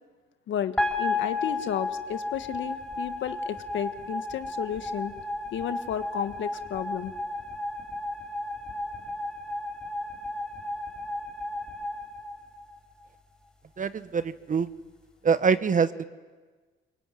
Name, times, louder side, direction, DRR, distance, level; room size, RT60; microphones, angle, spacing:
voice 1, 0.5-5.1 5.5-7.1, left 9 dB, 75° left, 9 dB, 1.6 m, -32 dB
sound 1, 0.8-13.0, left 2 dB, 5° left, 5.7 m, -33 dB
voice 2, 13.8-14.7 15.2-16.0, right 6 dB, 40° right, 13 dB, 1.2 m, -24 dB
25.0 x 22.5 x 9.3 m, 1.4 s
cardioid pair, 90°, 20 cm